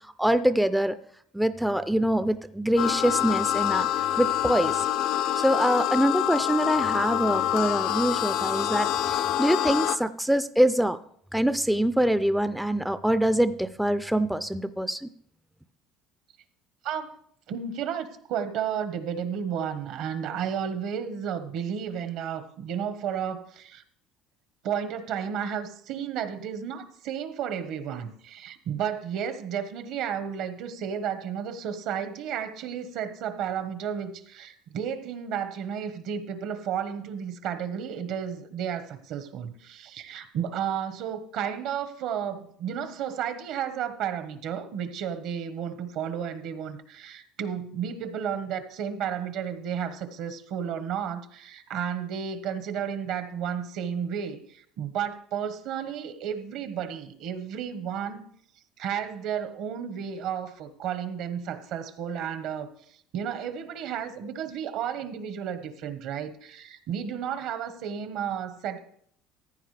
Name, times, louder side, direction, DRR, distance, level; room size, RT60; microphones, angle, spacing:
voice 1, 0.2-1.0 1.3-3.9 4.2-4.9 5.4-11.0 11.3-15.1, right 1 dB, ahead, 11 dB, 0.4 m, -24 dB
sound 1, 2.8-10.0, left 12 dB, 65° left, 0.5 m, -26 dB
voice 2, 16.8-17.2 17.5-23.8 24.6-58.2 58.8-62.7 63.1-68.8, right 8 dB, 65° right, 10 dB, 1.2 m, -32 dB
15.0 x 9.7 x 3.3 m, 0.65 s
cardioid pair, 135°, 0 cm